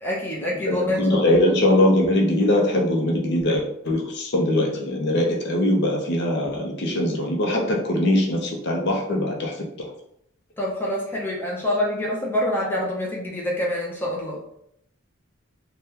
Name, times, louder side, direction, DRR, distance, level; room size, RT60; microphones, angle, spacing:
voice 1, 0.0-1.3 10.6-14.4, left 1 dB, 10° left, -4 dB, 0.6 m, -26 dB
voice 2, 0.7-9.5, left 1 dB, 55° left, 0 dB, 0.6 m, -21 dB
3.4 x 2.2 x 2.8 m, 0.73 s
head